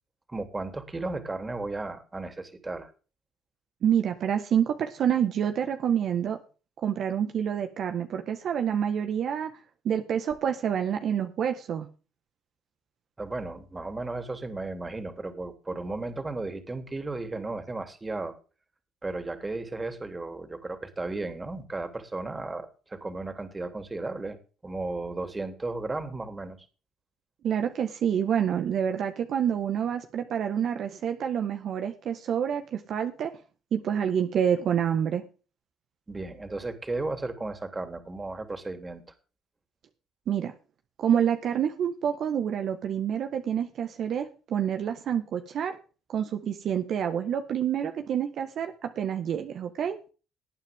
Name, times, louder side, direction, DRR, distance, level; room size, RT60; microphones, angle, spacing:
voice 1, 0.3-2.9 13.2-18.4 19.0-24.4 24.6-26.6 36.1-39.0, right 2 dB, 20° right, 7 dB, 3.3 m, -34 dB
voice 2, 3.8-6.4 6.8-9.5 9.8-11.9 27.4-33.3 33.7-35.2 40.3-40.5 41.0-45.8 46.1-50.0, right 8 dB, 60° right, 6 dB, 1.6 m, -27 dB
19.0 x 9.2 x 3.7 m, 0.35 s
supercardioid pair, 65°, 0 cm